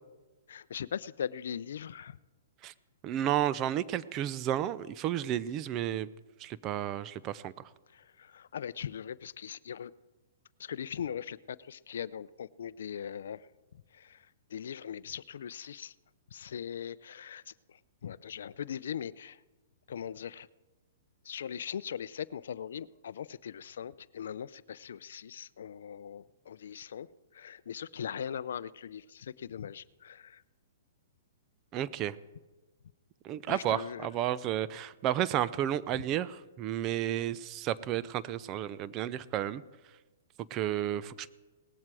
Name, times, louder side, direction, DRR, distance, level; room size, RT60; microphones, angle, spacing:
voice 1, 0.5-2.2 7.9-9.9 10.6-13.5 13.9-15.9 16.3-19.4 19.9-20.5 21.2-27.1 27.3-30.4 33.5-34.1, left 8 dB, 75° left, 18 dB, 0.4 m, -40 dB
voice 2, 3.0-6.1 6.4-7.5 31.7-32.2 33.2-39.6 40.5-41.3, right 11 dB, 25° right, 17 dB, 0.5 m, -32 dB
18.5 x 15.0 x 4.8 m, 1.2 s
hypercardioid pair, 155°, 0 cm